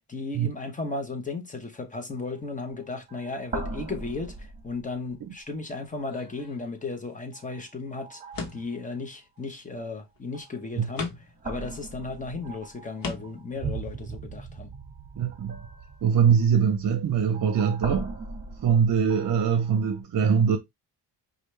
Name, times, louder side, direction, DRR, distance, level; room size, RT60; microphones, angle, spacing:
voice 1, 0.1-8.2 8.5-14.7, left 3 dB, 20° left, 1.0 m, -35 dB
sound 1, 2.2-2.3 2.7-2.8 3.1-5.4 6.0-6.5 7.3-7.6 8.0-8.8 10.3-10.8 11.4-20.0, right 3 dB, 20° right, 1.5 m, -39 dB
sound 2, 6.1-7.0 8.3-8.9 10.2-10.3 10.9-11.4 12.2-12.3 13.0-13.5, left 4 dB, 50° left, 1.2 m, -37 dB
voice 2, 15.2-15.6 16.0-18.1 18.6-20.6, right 7 dB, 50° right, 0.8 m, -22 dB
5.0 x 2.5 x 3.2 m
cardioid pair, 110°, 43 cm